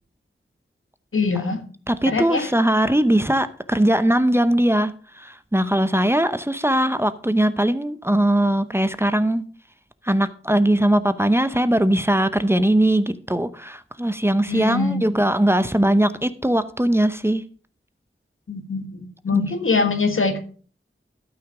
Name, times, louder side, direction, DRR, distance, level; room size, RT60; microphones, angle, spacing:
voice 1, 1.1-1.6 2.0-2.5 14.5-15.2 18.5-20.4, left 3 dB, 85° left, 1.6 m, -23 dB
voice 2, 1.9-9.4 10.0-17.4 19.3-19.4, right 1 dB, 10° right, 0.7 m, -20 dB
12.5 x 5.8 x 4.9 m
wide cardioid pair, 55°, 21 cm